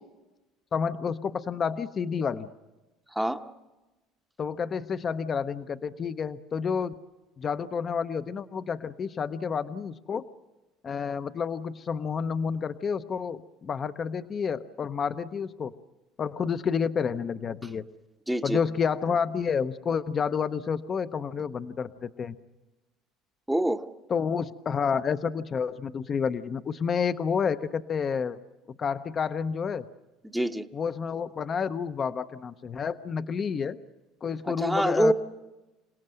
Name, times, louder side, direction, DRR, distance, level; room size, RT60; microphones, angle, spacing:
voice 1, 0.7-2.5 4.4-7.0 7.4-10.2 10.8-15.7 16.2-17.8 18.4-22.4 24.1-28.4 28.8-29.8 30.7-33.8 34.2-35.1, left 6 dB, 35° left, 12 dB, 0.7 m, -29 dB
voice 2, 3.1-3.4 18.3-18.6 23.5-23.8 30.3-30.6 34.5-35.1, right 1 dB, 5° right, 7 dB, 0.9 m, -25 dB
27.5 x 17.5 x 7.7 m, 1.1 s
supercardioid pair, 115°, 0 cm